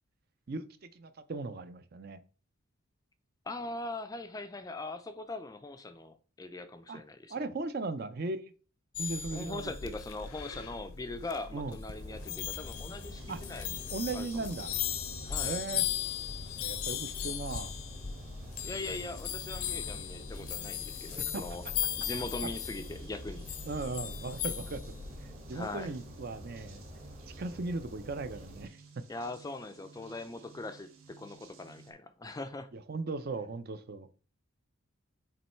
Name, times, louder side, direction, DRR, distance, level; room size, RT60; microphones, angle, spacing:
voice 1, 0.5-2.2 6.9-7.0 7.3-8.5 9.0-9.9 11.5-11.8 13.3-13.4 13.9-14.7 15.4-15.9 16.6-17.7 21.3-21.4 23.7-24.8 25.5-26.8 27.4-28.8 32.9-34.1, right 3 dB, 45° right, 0.5 m, -37 dB
voice 2, 3.5-7.3 9.3-13.8 14.1-14.4 15.2-15.6 18.6-21.6 22.0-23.5 25.5-25.9 29.1-32.7, left 2 dB, 15° left, 0.3 m, -41 dB
sound 1, 9.0-25.3, left 10 dB, 85° left, 0.6 m, -38 dB
sound 2, 11.9-28.7, equal, 30° right, 1.0 m, -48 dB
sound 3, 13.1-31.9, right 5 dB, 80° right, 1.3 m, -55 dB
7.5 x 3.1 x 4.3 m
head